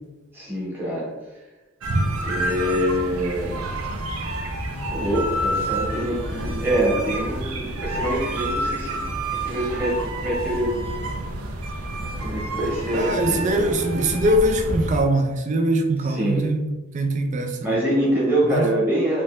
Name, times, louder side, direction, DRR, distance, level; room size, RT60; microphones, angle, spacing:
voice 1, 0.3-1.1 2.2-3.7 4.9-9.0 9.3-10.7 12.2-13.7 16.0-16.4 17.6-19.2, right 1 dB, 10° right, -6 dB, 1.1 m, -25 dB
sound 1, 1.8-15.0, right 1 dB, 90° right, 0.5 m, -28 dB
voice 2, 12.9-17.6 18.5-18.7, right 1 dB, 35° right, 4 dB, 0.4 m, -22 dB
3.3 x 2.8 x 3.1 m, 1.1 s
head